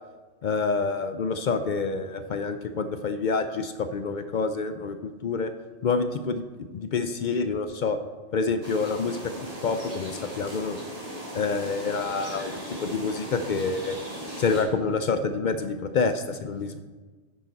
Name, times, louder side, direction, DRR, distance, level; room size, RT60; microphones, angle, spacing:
voice 1, 0.4-5.5 5.8-6.4 6.7-8.0 8.3-9.3 9.6-10.8 11.3-12.5 12.8-14.0 14.4-16.8, left 4 dB, 60° left, 9 dB, 0.5 m, -27 dB
sound 1, 8.6-14.6, equal, 30° right, 2.4 m, -38 dB
9.8 x 9.0 x 4.0 m, 1.4 s
omnidirectional pair, 1.2 m